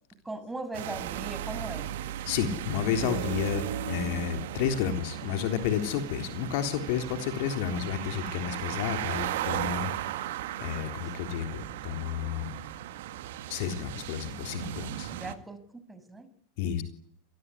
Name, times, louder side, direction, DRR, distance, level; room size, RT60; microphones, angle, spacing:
voice 1, 0.2-1.9 10.7-11.0 15.1-15.6 15.9-16.3, right 2 dB, 10° right, 12 dB, 6.5 m, -39 dB
sound 1, 0.7-15.3, right 12 dB, 60° right, 2.1 m, -36 dB
voice 2, 2.3-10.3 10.6-12.6 13.5-15.1 16.6-16.8, left 8 dB, 55° left, 7 dB, 3.6 m, -31 dB
28.0 x 19.5 x 9.9 m, 0.65 s
figure-of-eight pair, 90°, 0 cm